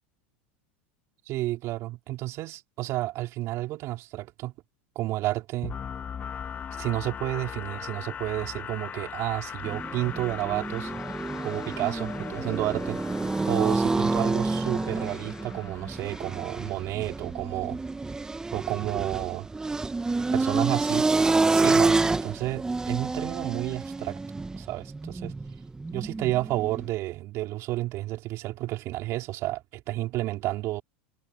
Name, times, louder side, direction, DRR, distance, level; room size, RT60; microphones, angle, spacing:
voice 1, 1.3-4.5 4.9-5.8 6.8-10.9 11.4-13.0 13.5-17.8 18.5-19.5 20.3-21.1 21.5-24.2 24.6-25.3 25.9-30.8, right 17 dB, 50° right, 4.3 m, -31 dB
sound 1, 5.6-17.4, left 8 dB, 25° left, 2.0 m, -39 dB
sound 2, 9.6-26.9, right 3 dB, 10° right, 1.4 m, -28 dB
supercardioid pair, 120°, 6 cm